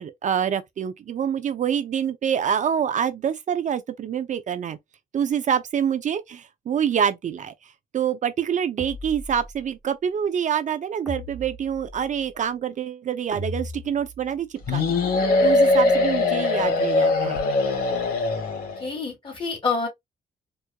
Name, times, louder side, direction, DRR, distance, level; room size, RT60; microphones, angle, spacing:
voice 1, 0.0-4.8 5.1-7.5 7.9-15.0 15.4-17.4, right 8 dB, 50° right, 0.5 m, -26 dB
sound 1, 8.8-9.9 11.1-12.3 13.3-14.6, equal, 10° right, 1.3 m, -37 dB
sound 2, 14.7-18.8, left 2 dB, 70° left, 1.8 m, -21 dB
voice 2, 18.8-19.9, left 4 dB, 30° left, 2.4 m, -27 dB
4.5 x 2.6 x 2.2 m
cardioid pair, 115°, 16 cm